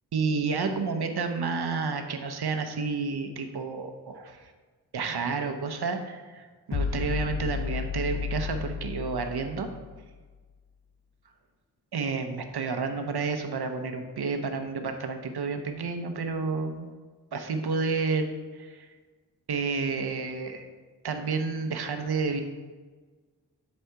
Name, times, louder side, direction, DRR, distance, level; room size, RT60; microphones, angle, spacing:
voice 1, 0.1-4.5 4.9-9.7 11.9-16.9 17.3-18.9 19.5-20.7 21.0-22.4, right 4 dB, 80° right, 6 dB, 0.9 m, -30 dB
sound 1, 6.7-10.2, left 6 dB, 45° left, 0.6 m, -32 dB
10.0 x 4.2 x 4.6 m, 1.4 s
wide cardioid pair, 70°, 38 cm